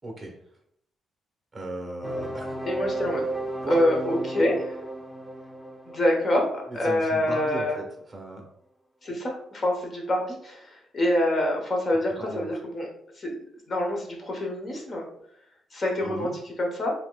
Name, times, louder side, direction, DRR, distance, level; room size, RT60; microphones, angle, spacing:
voice 1, 0.0-0.4 1.5-2.5 3.6-3.8 6.8-7.8 8.1-8.4 12.3-12.5 16.0-16.3, right 1 dB, 20° right, 1 dB, 1.0 m, -36 dB
sound 1, 2.0-7.7, right 2 dB, ahead, 0.4 m, -34 dB
voice 2, 2.6-3.2 3.7-4.7 5.9-7.8 9.0-12.9 13.1-15.0 15.7-16.9, left 1 dB, 35° left, 0 dB, 0.9 m, -26 dB
5.8 x 2.9 x 2.3 m, 0.68 s
cardioid pair, 135°, 0 cm